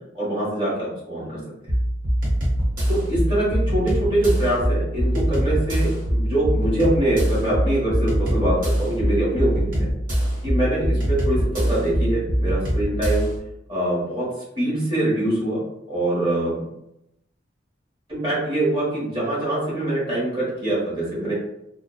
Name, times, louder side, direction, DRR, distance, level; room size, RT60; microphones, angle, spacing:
voice 1, 0.1-1.4 2.9-9.9 10.4-13.3 13.7-14.3 14.6-15.6 15.9-16.7 18.1-21.3, right 1 dB, 30° right, -8 dB, 1.1 m, -24 dB
sound 1, 1.7-13.4, equal, 50° right, 0.8 m, -23 dB
2.7 x 2.0 x 2.3 m, 0.84 s
head